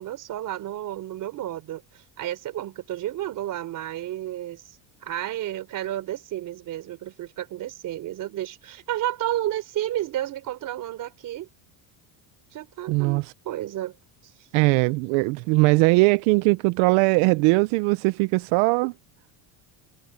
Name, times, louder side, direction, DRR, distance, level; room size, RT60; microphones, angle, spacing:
voice 1, 0.0-11.5 12.5-14.0, right 13 dB, 40° right, 3.9 m, -32 dB
voice 2, 12.9-13.3 14.5-18.9, right 25 dB, 80° right, 0.7 m, -20 dB
cardioid pair, 170°, 46 cm